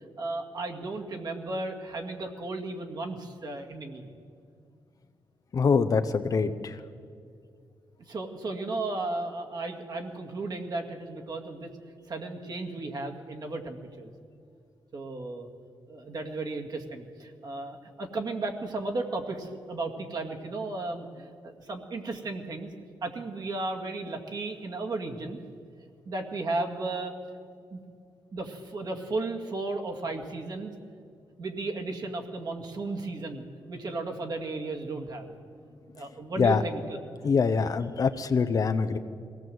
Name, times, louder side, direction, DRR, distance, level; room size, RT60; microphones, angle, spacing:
voice 1, 0.2-4.1 8.1-11.7 12.1-14.1 14.9-15.5 15.9-22.7 23.0-25.4 26.1-27.1 27.7-27.8 28.3-30.7 31.4-35.3 35.9-37.0, right 2 dB, 50° right, 2 dB, 2.1 m, -34 dB
voice 2, 5.5-6.8 36.4-36.6 37.2-39.0, left 5 dB, 45° left, 9 dB, 0.8 m, -24 dB
22.5 x 17.5 x 7.8 m, 2.4 s
wide cardioid pair, 150°, 9 cm